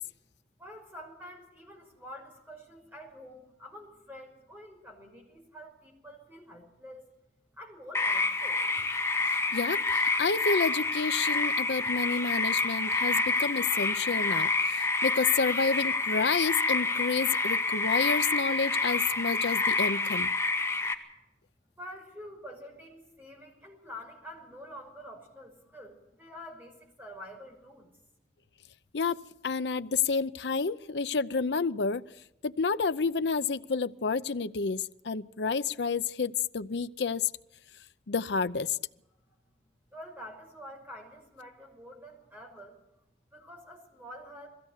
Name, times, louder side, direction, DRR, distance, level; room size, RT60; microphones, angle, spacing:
voice 1, 0.6-7.1 7.6-8.9 21.8-27.9 39.9-42.8 43.3-44.5, equal, 10° right, 1 dB, 5.7 m, -47 dB
sound 1, 7.9-20.9, left 3 dB, 15° left, 1.9 m, -28 dB
voice 2, 9.5-20.3 28.9-32.0 32.4-37.3 38.1-38.8, left 5 dB, 85° left, 12 dB, 0.7 m, -30 dB
21.5 x 16.0 x 8.3 m, 0.89 s
head